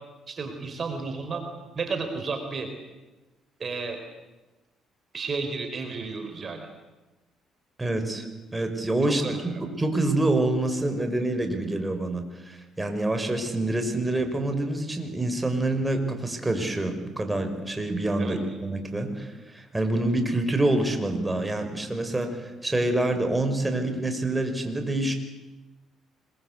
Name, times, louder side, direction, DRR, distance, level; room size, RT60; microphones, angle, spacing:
voice 1, 0.3-1.4 1.7-2.7 3.6-4.0 5.1-6.7 9.1-9.4 18.2-18.6, right 4 dB, 45° right, 6 dB, 4.4 m, -32 dB
voice 2, 7.8-8.3 8.5-25.1, right 2 dB, 15° right, 6 dB, 5.9 m, -26 dB
26.0 x 23.0 x 8.4 m, 1.1 s
supercardioid pair, 65°, 0 cm